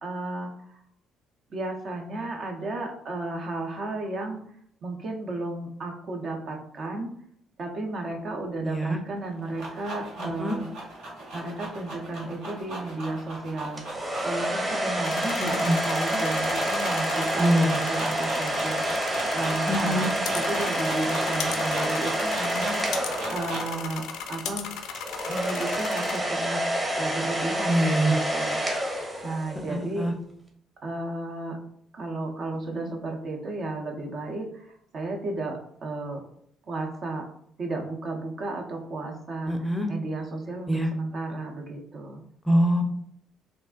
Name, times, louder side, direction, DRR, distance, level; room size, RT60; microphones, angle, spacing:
voice 1, 0.0-0.8 1.5-4.4 4.8-7.1 7.6-10.7 11.3-24.0 24.3-24.7 25.3-26.7 27.0-30.1 30.8-31.6 31.9-36.2 36.7-37.3 37.6-42.2, right 2 dB, 50° right, 2 dB, 0.6 m, -33 dB
voice 2, 8.7-9.0 10.2-10.6 15.4-15.8 17.4-17.7 19.7-20.1 27.7-28.1 29.7-30.1 32.7-32.8 39.5-39.9 40.7-40.9 42.5-42.8, right 1 dB, 5° left, 5 dB, 0.6 m, -24 dB
sound 1, 9.2-23.8, right 1 dB, 70° right, 1.0 m, -36 dB
sound 2, 13.8-23.9 24.9-29.7, right 1 dB, 20° right, 1.0 m, -28 dB
sound 3, 15.0-26.2, left 6 dB, 65° left, 0.4 m, -37 dB
3.3 x 2.5 x 2.4 m, 0.67 s
hypercardioid pair, 50°, 0 cm